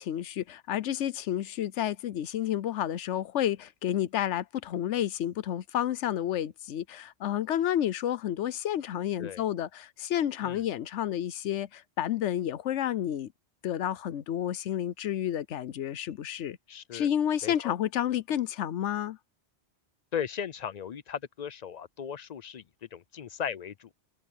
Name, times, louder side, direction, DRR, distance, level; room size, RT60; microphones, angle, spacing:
voice 1, 0.0-13.3 13.6-16.6 16.9-19.2, left 11 dB, 90° left, 1.0 m, -30 dB
voice 2, 16.7-17.1 17.4-17.7 20.1-22.6 22.9-23.9, left 8 dB, 50° left, 0.5 m, -37 dB
omnidirectional pair, 1.2 m